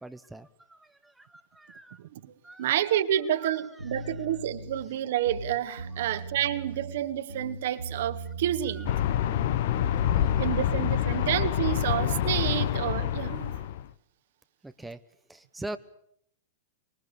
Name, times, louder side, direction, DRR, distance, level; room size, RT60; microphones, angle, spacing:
voice 1, 0.0-2.0 2.4-2.9 3.4-4.1 5.9-6.2 8.8-9.3 10.0-11.3 14.6-15.0 15.3-15.8, right 2 dB, 5° right, 1.1 m, -45 dB
voice 2, 2.0-2.3 2.6-9.0 10.4-13.7, right 11 dB, 60° right, 1.9 m, -29 dB
sound 1, 3.8-4.8 5.2-7.0 7.3-9.0 9.3-11.7, right 3 dB, 80° right, 3.3 m, -39 dB
sound 2, 8.8-13.8, left 11 dB, 55° left, 1.2 m, -27 dB
25.0 x 22.5 x 8.6 m
figure-of-eight pair, 100°, 0 cm